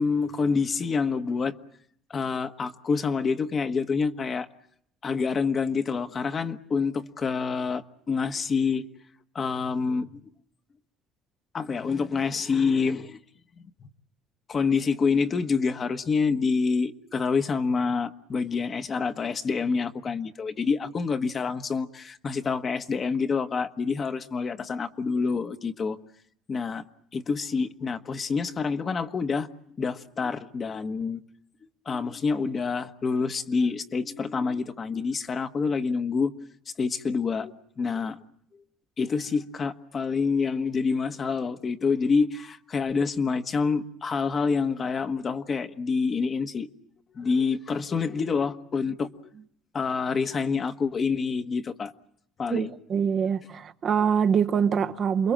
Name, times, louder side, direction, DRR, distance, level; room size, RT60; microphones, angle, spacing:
voice 1, 0.0-1.5 2.1-4.5 5.0-8.9 9.3-10.2 11.5-13.2 13.6-13.7 14.5-26.0 26.5-26.8 27.1-29.5 29.8-31.2 31.8-36.3 36.8-38.2 39.0-46.7 47.1-49.3 49.7-51.9 52.4-52.7, left 5 dB, 35° left, 1.3 m, -27 dB
voice 2, 52.5-55.3, right 7 dB, 45° right, 1.1 m, -24 dB
28.5 x 22.5 x 7.5 m
cardioid pair, 115°, 0 cm